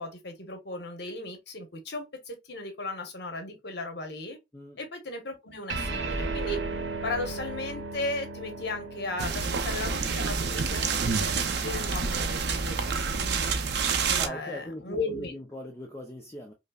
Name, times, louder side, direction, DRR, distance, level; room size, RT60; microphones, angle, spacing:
voice 1, 0.0-4.4 4.8-6.6 7.0-13.5 14.1-15.3, left 2 dB, 65° left, 1.0 m, -36 dB
sound 1, 5.7-12.5, right 3 dB, 85° right, 0.9 m, -36 dB
sound 2, 9.2-14.3, right 5 dB, 65° right, 0.5 m, -28 dB
voice 2, 14.2-16.5, left 1 dB, 15° left, 0.5 m, -40 dB
5.1 x 2.0 x 2.3 m
head